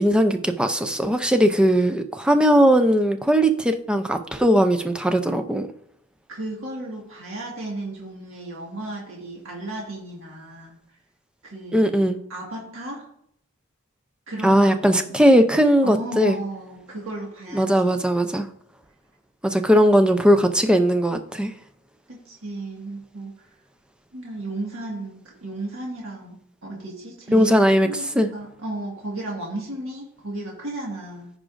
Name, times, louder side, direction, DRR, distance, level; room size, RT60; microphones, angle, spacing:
voice 1, 0.0-5.7 11.7-12.2 14.4-16.4 17.5-18.5 19.4-21.5 27.3-27.9 28.2-28.3, equal, 5° right, 7 dB, 0.4 m, -18 dB
voice 2, 6.3-10.8 11.4-12.0 12.3-13.1 14.3-15.1 15.8-18.0 22.1-23.5 24.1-31.3, right 2 dB, 60° right, -2 dB, 1.7 m, -34 dB
14.5 x 5.0 x 2.5 m, 0.70 s
head